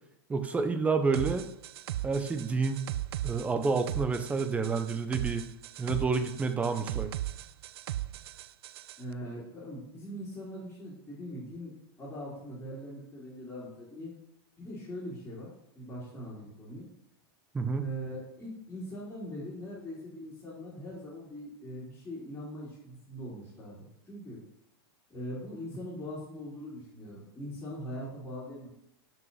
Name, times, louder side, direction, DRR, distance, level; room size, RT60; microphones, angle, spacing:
voice 1, 0.3-1.4 2.0-2.8 3.2-5.5 5.8-7.1 17.5-17.8, right 4 dB, 10° right, 8 dB, 0.7 m, -29 dB
sound 1, 1.1-9.0, right 13 dB, 80° right, 0.4 m, -37 dB
voice 2, 9.0-11.7 12.0-14.1 14.6-15.5 15.7-16.9 17.8-24.4 25.1-28.7, equal, 10° left, -11 dB, 3.7 m, -41 dB
7.2 x 6.6 x 5.6 m, 0.79 s
supercardioid pair, 150°, 13 cm